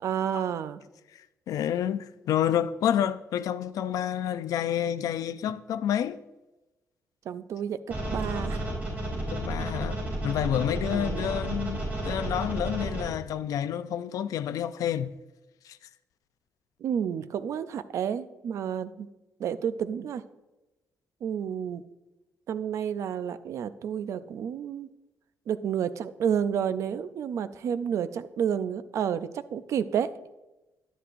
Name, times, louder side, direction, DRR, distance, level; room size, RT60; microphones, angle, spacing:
voice 1, 0.0-0.8 7.3-8.7 10.9-11.3 11.9-12.0 16.8-19.1 19.4-20.2 21.2-21.8 22.5-24.9 25.5-30.1, right 8 dB, 60° right, 0.4 m, -30 dB
voice 2, 1.5-6.2 9.3-15.1 15.6-15.8, left 10 dB, 90° left, 0.4 m, -29 dB
sound 1, 7.9-13.0, right 1 dB, 30° right, 3.6 m, -32 dB
11.0 x 10.0 x 2.5 m
wide cardioid pair, 180°, 6 cm